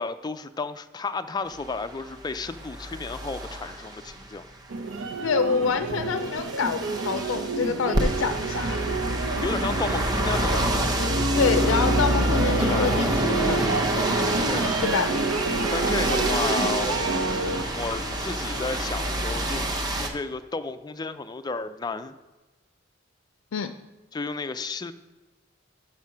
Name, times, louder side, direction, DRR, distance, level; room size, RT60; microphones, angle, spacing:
voice 1, 0.0-4.4 8.9-9.0 9.4-10.8 12.6-12.9 14.4-14.8 15.7-17.2 17.7-19.7 19.9-22.2 24.1-24.9, left 3 dB, 20° left, 10 dB, 0.4 m, -32 dB
sound 1, 1.5-4.4 5.7-20.1, right 1 dB, 20° right, 0.8 m, -27 dB
sound 2, 4.7-17.6, right 3 dB, 85° right, 0.6 m, -29 dB
voice 2, 5.2-8.8 11.4-13.8 14.8-15.1 23.5-23.7, left 6 dB, 90° left, 9 dB, 0.4 m, -26 dB
sound 3, 13.8-19.6, equal, 65° right, 1.8 m, -39 dB
7.2 x 6.2 x 5.7 m, 1.2 s
head